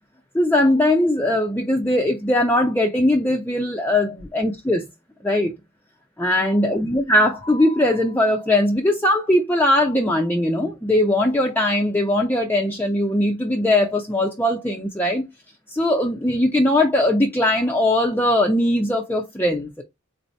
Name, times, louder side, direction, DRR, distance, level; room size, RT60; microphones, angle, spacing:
voice 1, 0.3-4.8 5.2-5.5 6.2-15.2 15.7-19.8, left 1 dB, 10° left, 0.5 m, -20 dB
4.0 x 2.7 x 4.3 m
head